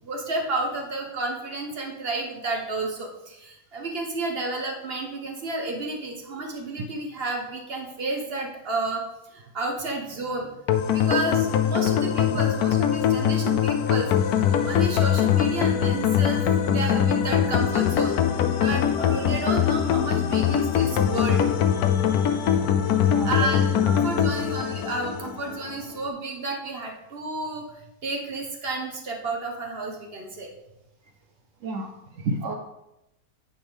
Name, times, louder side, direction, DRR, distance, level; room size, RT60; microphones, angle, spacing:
voice 1, 0.0-9.0 9.3-10.5 10.9-14.1 14.6-18.2 18.6-22.5 23.2-30.5, right 2 dB, 40° right, 2 dB, 1.0 m, -31 dB
sound 1, 10.7-25.7, left 9 dB, 70° left, 0.9 m, -22 dB
voice 2, 23.1-23.8 31.6-32.5, right 2 dB, 70° right, 4 dB, 0.7 m, -31 dB
9.5 x 3.5 x 5.1 m, 0.90 s
omnidirectional pair, 1.9 m